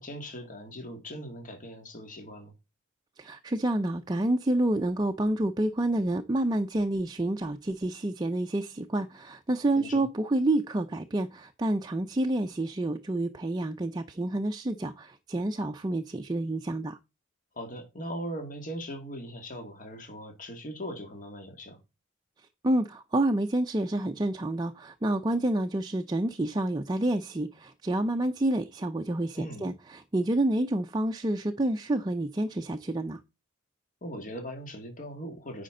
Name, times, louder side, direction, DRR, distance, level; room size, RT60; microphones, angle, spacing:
voice 1, 0.0-2.5 9.8-10.1 17.5-21.8 29.3-29.7 34.0-35.6, equal, 40° left, 1.9 m, -39 dB
voice 2, 3.2-17.0 22.6-33.2, right 1 dB, 20° right, 0.5 m, -28 dB
9.6 x 5.1 x 3.7 m
head